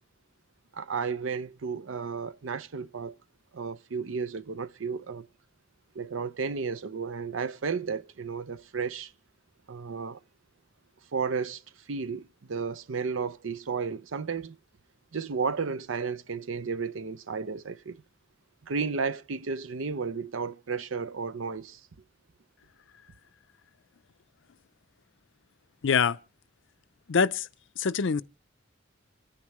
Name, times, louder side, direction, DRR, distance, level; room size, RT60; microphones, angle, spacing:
voice 1, 0.7-3.2 3.5-5.3 5.9-9.1 9.7-10.2 11.1-11.6 11.9-14.6 15.1-18.0 18.6-21.8, right 5 dB, 70° right, 0.6 m, -33 dB
voice 2, 25.8-26.2 27.1-27.5 27.8-28.2, left 6 dB, 65° left, 0.6 m, -24 dB
26.5 x 9.8 x 3.1 m
head